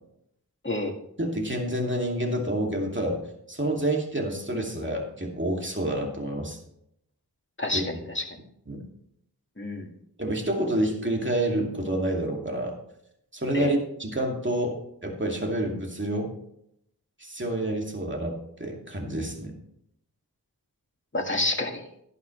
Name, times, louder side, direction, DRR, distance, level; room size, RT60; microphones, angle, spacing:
voice 1, 1.2-3.2 3.5-6.6 7.7-8.0 8.7-8.8 10.2-12.8 13.3-16.3 17.2-19.6, right 1 dB, 30° right, 1 dB, 2.5 m, -28 dB
voice 2, 7.6-8.2 9.6-9.9 13.5-13.7 21.1-21.9, left 2 dB, 30° left, 2 dB, 1.9 m, -29 dB
12.5 x 11.0 x 3.3 m, 0.74 s
wide cardioid pair, 40°, 39 cm